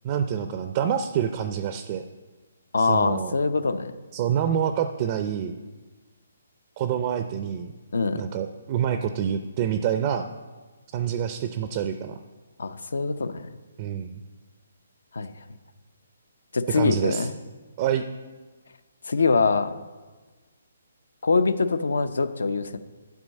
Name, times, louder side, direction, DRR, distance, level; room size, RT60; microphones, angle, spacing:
voice 1, 0.0-2.0 2.8-3.3 4.1-5.6 6.8-7.7 8.1-10.3 10.9-12.2 13.8-14.2 16.7-17.3 17.8-18.0, right 9 dB, 30° right, 9 dB, 0.4 m, -27 dB
voice 2, 2.7-4.0 7.9-8.2 12.6-13.5 15.1-15.3 16.5-17.4 19.1-19.7 21.2-22.8, left 4 dB, 85° left, 12 dB, 0.7 m, -23 dB
11.0 x 4.7 x 6.4 m, 1.3 s
hypercardioid pair, 165°, 0 cm